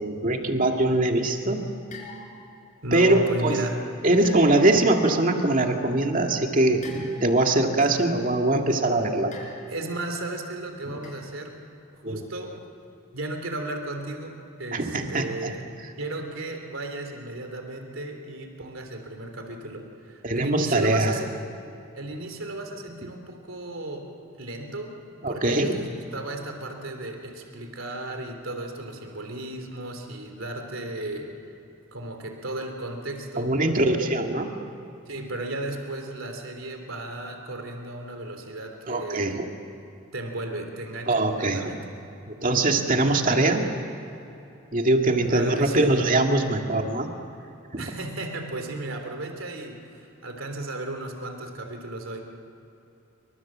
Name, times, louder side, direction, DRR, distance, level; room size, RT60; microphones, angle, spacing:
voice 1, 0.0-1.7 2.9-3.6 4.0-9.3 12.0-12.2 14.7-15.5 20.2-21.2 25.2-25.8 33.4-34.5 38.9-39.5 41.1-41.7 42.3-43.7 44.7-47.1 47.7-47.8, right 2 dB, 40° right, 3 dB, 2.2 m, -22 dB
sound 1, 1.9-2.6 4.2-4.9 6.8-7.5 9.3-9.9 11.0-11.3, left 2 dB, 40° left, 6.3 m, -43 dB
voice 2, 2.8-3.8 9.7-11.6 11.9-12.6 13.1-15.7 16.0-21.3 21.9-24.1 24.4-25.0 25.3-31.3 31.9-33.5 35.1-39.4 40.1-41.9 45.3-45.9 47.8-52.2, right 1 dB, 75° right, 4 dB, 3.3 m, -35 dB
28.0 x 25.0 x 7.5 m, 2.8 s
head